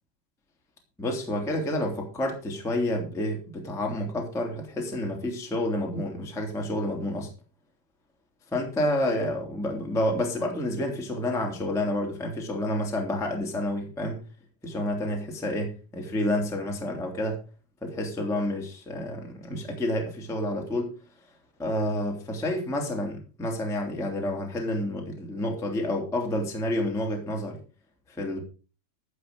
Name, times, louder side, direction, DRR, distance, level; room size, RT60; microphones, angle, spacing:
voice 1, 1.0-7.3 8.5-14.2 14.6-17.4 17.8-20.9 21.6-27.6 28.1-28.4, left 1 dB, ahead, 1 dB, 2.1 m, -29 dB
13.5 x 7.9 x 5.3 m, 0.35 s
omnidirectional pair, 5.4 m